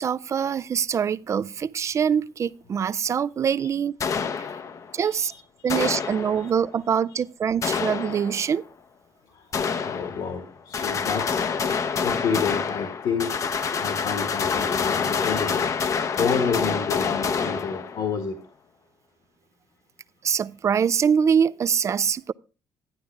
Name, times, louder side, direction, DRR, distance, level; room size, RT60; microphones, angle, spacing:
voice 1, 0.0-4.0 4.9-5.3 5.6-8.6 20.2-22.3, right 7 dB, 40° right, 0.4 m, -24 dB
sound 1, 4.0-5.0 5.7-6.7 7.6-8.6 9.5-10.4 10.7-18.2, left 6 dB, 45° left, 0.7 m, -27 dB
voice 2, 5.0-5.4 5.6-6.0 6.4-6.5 7.1-7.2 9.2-11.5 12.0-18.4, left 5 dB, 65° left, 1.7 m, -30 dB
11.5 x 9.7 x 3.4 m
cardioid pair, 110°, 8 cm